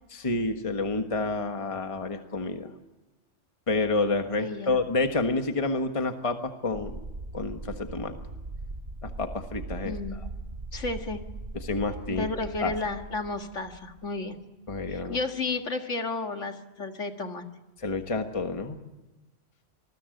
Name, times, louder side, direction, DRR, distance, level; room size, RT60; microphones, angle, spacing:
voice 1, 0.1-2.7 3.7-7.0 7.3-8.1 9.0-10.2 11.5-12.3 12.6-12.7 14.7-15.2 17.8-18.8, left 3 dB, 25° left, 6 dB, 1.5 m, -29 dB
voice 2, 4.4-4.8 9.8-10.2 10.7-11.2 12.1-14.4 14.8-17.4, left 3 dB, 75° left, 5 dB, 2.3 m, -32 dB
sound 1, 6.7-14.3, right 2 dB, 45° right, 1.8 m, -40 dB
26.5 x 21.0 x 7.9 m, 1.1 s
omnidirectional pair, 1.3 m